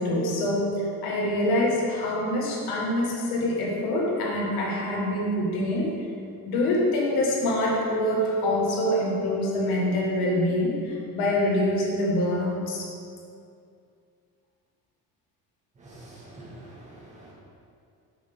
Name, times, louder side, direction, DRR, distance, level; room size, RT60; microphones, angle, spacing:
voice 1, 0.0-5.9 6.5-12.9, left 1 dB, 85° left, -3 dB, 1.7 m, -25 dB
voice 2, 15.8-17.3, right 1 dB, 20° right, -7 dB, 1.8 m, -46 dB
7.1 x 7.0 x 3.6 m, 2.4 s
cardioid pair, 180°, 36 cm